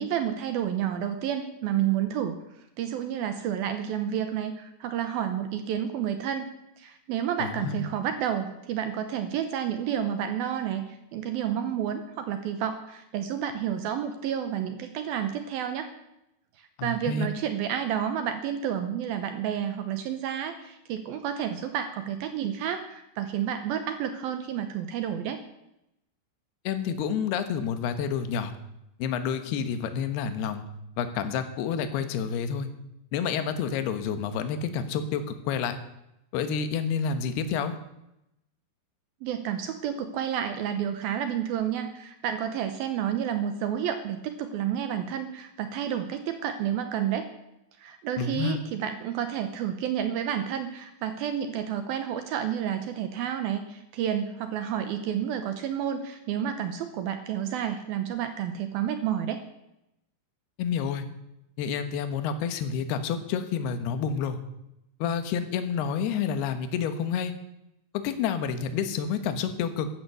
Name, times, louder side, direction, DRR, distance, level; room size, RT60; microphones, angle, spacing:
voice 1, 0.0-2.4 2.8-6.5 6.8-15.9 16.6-25.4 39.2-47.3 47.8-59.4, right 9 dB, 75° right, 8 dB, 2.2 m, -30 dB
voice 2, 7.4-7.8 16.8-17.3 26.6-28.5 29.0-30.6 31.0-32.7 33.1-35.8 36.3-37.8 48.2-48.6 60.6-61.0 61.6-64.4 65.0-67.3 68.0-69.9, left 7 dB, 70° left, 9 dB, 2.9 m, -29 dB
14.5 x 12.0 x 6.9 m, 0.86 s
omnidirectional pair, 5.5 m